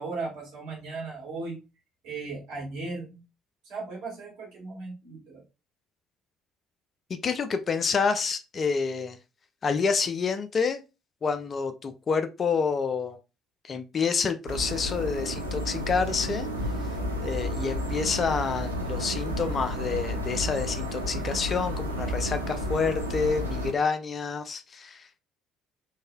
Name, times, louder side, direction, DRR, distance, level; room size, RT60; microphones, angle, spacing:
voice 1, 0.0-1.6 2.0-3.2 3.6-5.4, right 3 dB, 60° right, -3 dB, 1.5 m, -37 dB
voice 2, 7.1-9.2 9.6-10.8 11.2-13.2 13.6-16.5 17.2-25.2, left 5 dB, 35° left, 9 dB, 0.4 m, -28 dB
sound 1, 14.5-23.7, equal, 85° right, 0.4 m, -31 dB
3.1 x 2.6 x 2.2 m, 0.28 s
figure-of-eight pair, 50°, 0 cm